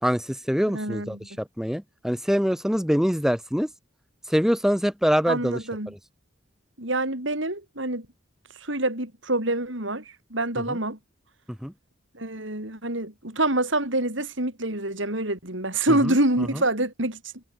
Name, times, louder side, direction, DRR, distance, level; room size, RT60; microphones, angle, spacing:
voice 1, 0.0-3.7 4.3-5.6 10.7-10.8 11.6-11.7 16.0-16.1, equal, ahead, 1.6 m, -24 dB
voice 2, 0.7-1.4 5.3-5.9 6.8-8.1 8.6-10.0 10.3-11.0 12.1-17.2, right 1 dB, 70° right, 7.0 m, -26 dB
head